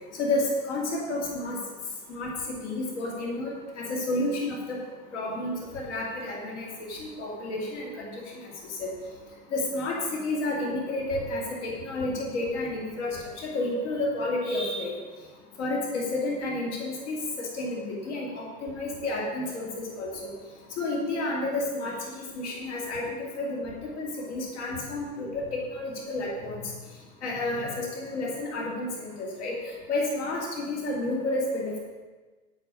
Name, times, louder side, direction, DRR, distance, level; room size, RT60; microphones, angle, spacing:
voice 1, 0.2-1.6 2.1-2.3 2.6-4.8 5.1-8.1 8.8-8.9 9.5-10.0 10.2-14.9 15.6-20.1 20.8-26.6 27.2-29.6 29.9-31.7, left 2 dB, 50° left, -2 dB, 2.5 m, -31 dB
8.9 x 8.4 x 5.4 m, 1.3 s
supercardioid pair, 175°, 46 cm